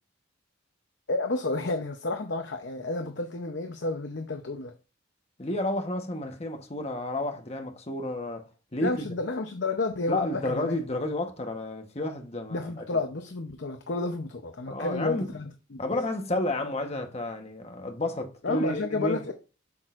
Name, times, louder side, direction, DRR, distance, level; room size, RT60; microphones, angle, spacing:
voice 1, 1.1-4.7 8.8-10.7 12.5-15.8 18.4-19.3, left 3 dB, 60° left, 0.7 m, -31 dB
voice 2, 5.4-8.5 8.7-9.1 10.1-13.0 14.7-15.3 15.8-19.2, left 1 dB, 30° left, 1.1 m, -31 dB
8.5 x 6.2 x 2.5 m
head